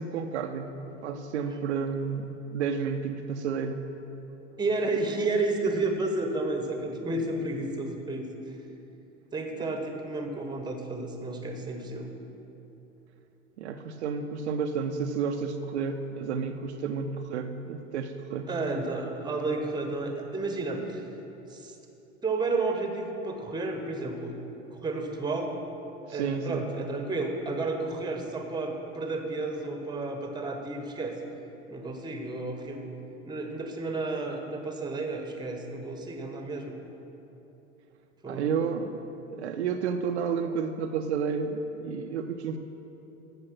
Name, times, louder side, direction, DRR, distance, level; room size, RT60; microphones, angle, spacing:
voice 1, 0.0-3.8 13.6-18.5 26.1-26.6 38.3-38.9 39.3-42.6, right 6 dB, 60° right, 5 dB, 0.6 m, -31 dB
voice 2, 4.6-8.3 9.3-12.1 18.5-21.0 21.5-21.8 22.2-24.3 24.6-25.5 26.1-31.2 31.7-32.9 33.2-36.7 38.2-38.5, right 3 dB, 10° right, 4 dB, 1.0 m, -31 dB
13.5 x 4.9 x 6.1 m, 3.0 s
figure-of-eight pair, 80°, 37 cm